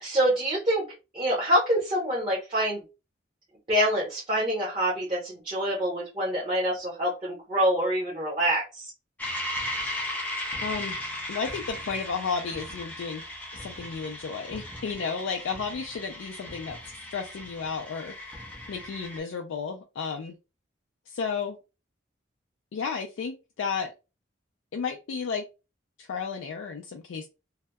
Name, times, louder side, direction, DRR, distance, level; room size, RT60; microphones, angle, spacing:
voice 1, 0.0-0.9 1.1-2.8 3.7-8.9, equal, 25° right, -5 dB, 0.7 m, -26 dB
sound 1, 9.2-19.2, left 1 dB, 5° left, 0.4 m, -37 dB
voice 2, 10.6-11.0 11.3-13.2 13.5-16.8 17.1-20.3 21.1-21.6 22.7-23.9 24.7-25.5 26.0-27.3, left 5 dB, 75° left, 3 dB, 0.3 m, -33 dB
2.6 x 2.1 x 2.2 m, 0.29 s
head